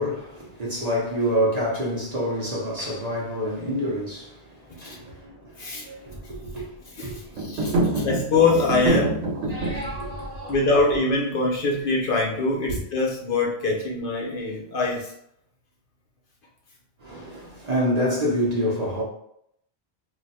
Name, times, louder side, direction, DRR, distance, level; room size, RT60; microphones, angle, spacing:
voice 1, 0.0-8.1 9.3-10.6 12.7-12.8 17.0-19.0, equal, 45° right, 0.7 m, -28 dB
voice 2, 7.0-9.2 10.5-15.1, left 3 dB, 60° left, 0.7 m, -24 dB
sound 1, 7.3-9.9, right 2 dB, 90° right, 0.9 m, -25 dB
2.4 x 2.2 x 3.9 m
omnidirectional pair, 1.1 m